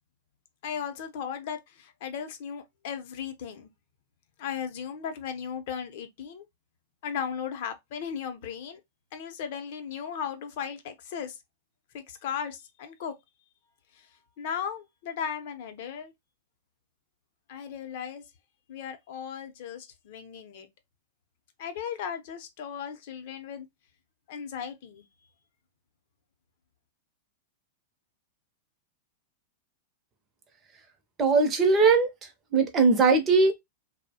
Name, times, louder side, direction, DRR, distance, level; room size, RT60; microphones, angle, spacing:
voice 1, 0.6-3.7 4.4-6.4 7.0-8.8 9.1-11.4 11.9-13.1 14.4-16.1 17.5-18.2 18.7-20.7 21.6-23.7 24.3-25.0, left 7 dB, 50° left, 0.6 m, -36 dB
voice 2, 31.2-32.1 32.5-33.5, right 4 dB, 20° right, 0.6 m, -20 dB
2.7 x 2.0 x 2.7 m
supercardioid pair, 165°, 0 cm